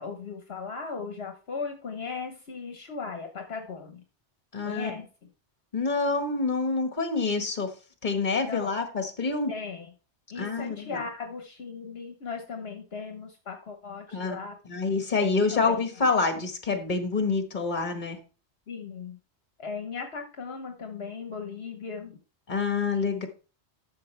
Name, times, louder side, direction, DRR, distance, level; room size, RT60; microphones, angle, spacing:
voice 1, 0.0-4.0 4.6-5.1 8.4-8.7 9.5-9.9 10.3-14.6 15.2-15.8 18.7-19.2 19.6-22.2, left 5 dB, 65° left, 4 dB, 1.3 m, -37 dB
voice 2, 4.5-4.9 5.7-7.7 8.0-9.5 10.3-11.0 14.1-14.4 14.7-18.2 22.5-23.3, left 4 dB, 45° left, 6 dB, 1.6 m, -27 dB
12.5 x 6.7 x 3.3 m, 0.35 s
omnidirectional pair, 1.1 m